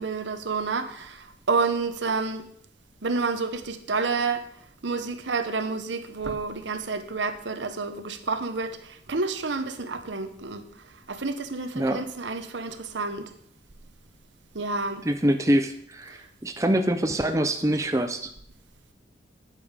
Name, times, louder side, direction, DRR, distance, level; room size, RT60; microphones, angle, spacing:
voice 1, 0.0-2.5 3.0-4.4 4.8-10.6 11.1-13.3 14.5-15.0, right 4 dB, 85° right, 1.0 m, -29 dB
voice 2, 15.0-18.3, right 1 dB, 15° right, 0.6 m, -24 dB
9.3 x 8.6 x 5.1 m
head